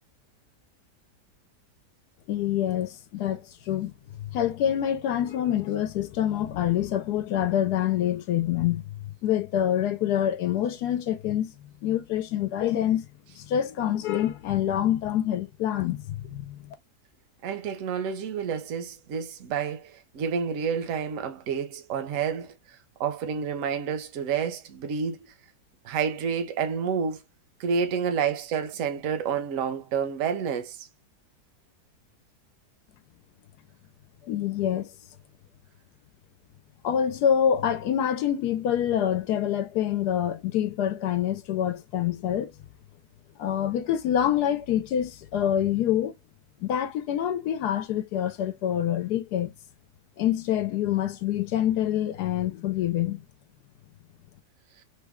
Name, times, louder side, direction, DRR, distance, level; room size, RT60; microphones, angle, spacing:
voice 1, 2.3-3.4 3.7-3.9 4.2-8.9 9.2-11.5 11.8-13.0 13.4-16.6 34.3-34.9 36.8-42.5 43.4-46.1 46.6-49.5 50.2-53.2, left 10 dB, 75° left, 1.1 m, -26 dB
voice 2, 17.4-22.5 23.0-25.2 25.8-27.2 27.6-30.9, right 6 dB, 60° right, 0.9 m, -29 dB
3.3 x 2.2 x 3.4 m
omnidirectional pair, 1.8 m